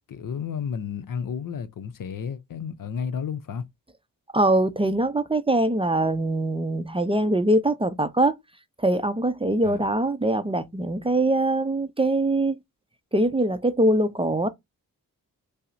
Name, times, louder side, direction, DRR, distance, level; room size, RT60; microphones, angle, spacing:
voice 1, 0.0-3.7 9.6-9.8, left 7 dB, 65° left, 0.7 m, -32 dB
voice 2, 4.3-8.4 8.8-12.6 13.1-14.5, right 1 dB, 15° right, 0.5 m, -23 dB
5.4 x 2.1 x 2.6 m
cardioid pair, 60°, 35 cm